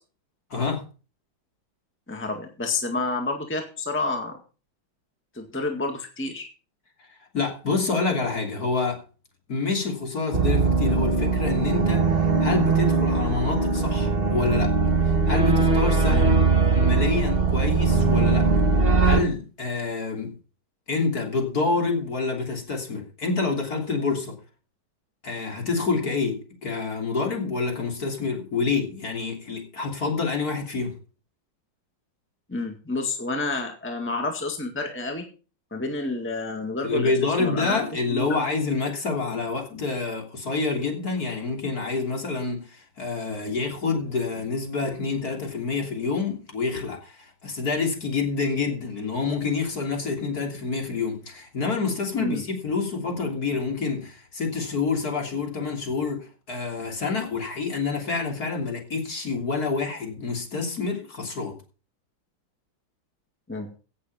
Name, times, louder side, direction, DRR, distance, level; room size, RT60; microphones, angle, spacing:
voice 1, 0.5-0.8 7.3-9.0 9.5-12.1 12.4-14.7 15.0-16.4 16.7-18.5 19.0-20.3 20.9-24.4 25.2-31.0 36.8-61.6, left 4 dB, 50° left, 3.6 m, -27 dB
voice 2, 2.1-4.4 5.4-6.5 16.1-16.2 32.5-35.2 35.7-37.1 37.4-37.8 38.1-38.4 52.2-52.4 63.5-63.7, left 3 dB, 5° left, 1.8 m, -29 dB
sound 1, 10.3-19.2, right 4 dB, 30° right, 2.3 m, -21 dB
16.5 x 7.3 x 5.6 m
omnidirectional pair, 2.1 m